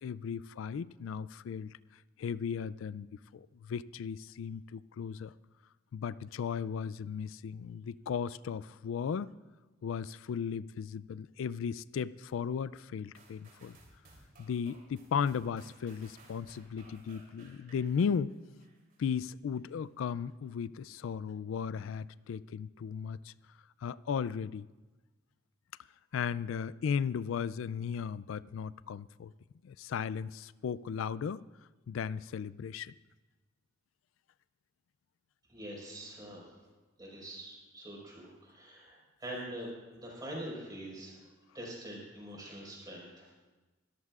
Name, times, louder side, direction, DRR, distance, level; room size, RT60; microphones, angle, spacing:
voice 1, 0.0-1.7 2.2-3.1 3.3-5.3 5.9-9.3 9.8-13.8 14.4-18.3 19.0-23.3 23.8-24.7 26.1-29.3 29.6-31.4 31.9-32.9, left 7 dB, 80° left, 20 dB, 0.3 m, -36 dB
sound 1, 13.1-19.0 19.5-19.6, right 2 dB, 50° right, 3.2 m, -60 dB
voice 2, 35.5-36.5 37.0-41.2 41.5-43.3, right 1 dB, 20° right, -4 dB, 4.8 m, -44 dB
22.0 x 14.0 x 2.4 m, 1.2 s
head